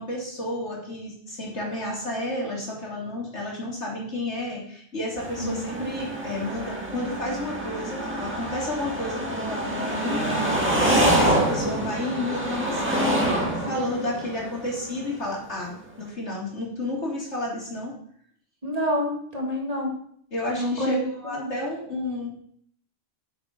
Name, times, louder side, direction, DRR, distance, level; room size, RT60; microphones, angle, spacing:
voice 1, 0.0-17.9 20.3-22.3, left 1 dB, 85° left, -3 dB, 3.5 m, -31 dB
sound 1, 5.2-15.2, right 1 dB, 10° right, 2.2 m, -26 dB
voice 2, 5.4-5.8 18.6-20.0 20.6-21.5, equal, 35° right, -2 dB, 2.6 m, -28 dB
8.9 x 7.7 x 6.1 m, 0.65 s
omnidirectional pair, 1.1 m